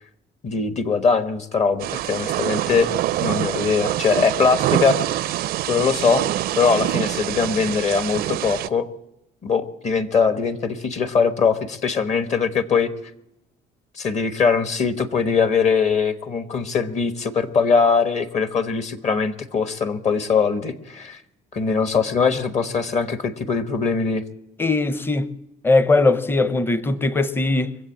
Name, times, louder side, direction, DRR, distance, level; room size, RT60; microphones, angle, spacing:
voice 1, 0.4-2.9 3.2-5.3 5.7-6.2 6.6-8.9 9.4-12.9 14.0-21.2 21.5-24.2, left 5 dB, 45° left, 1.2 m, -21 dB
Thunder / Rain, 1.8-8.7, right 14 dB, 65° right, 0.4 m, -25 dB
voice 2, 24.6-25.3 25.6-27.8, left 3 dB, 15° left, 0.7 m, -20 dB
23.5 x 8.0 x 7.3 m
cardioid pair, 110°, 17 cm